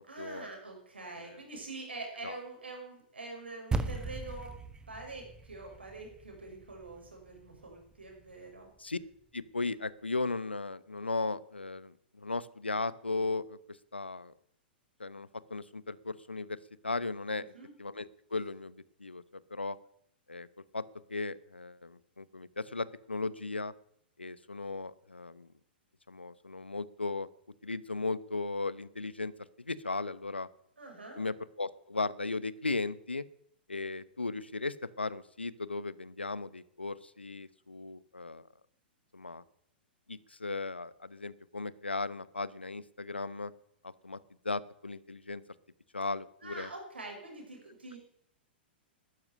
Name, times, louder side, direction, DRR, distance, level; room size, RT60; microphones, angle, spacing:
voice 1, 0.1-4.5 4.9-8.7 17.4-17.7 30.8-31.2 46.4-48.0, right 2 dB, 80° right, 2 dB, 6.4 m, -45 dB
sound 1, 3.7-8.2, right 3 dB, 15° right, 1.3 m, -39 dB
voice 2, 9.3-14.3 15.0-16.6 16.8-17.4 17.8-19.8 20.3-20.5 20.7-20.8 21.1-23.7 24.2-25.5 26.1-27.3 27.6-29.3 29.6-30.5 31.2-33.2 33.7-38.5 39.1-39.4 40.1-43.5 43.8-44.2 44.4-45.4 45.9-46.7, left 3 dB, 90° left, 18 dB, 0.9 m, -36 dB
13.0 x 11.0 x 9.6 m, 0.72 s
figure-of-eight pair, 105°, 6 cm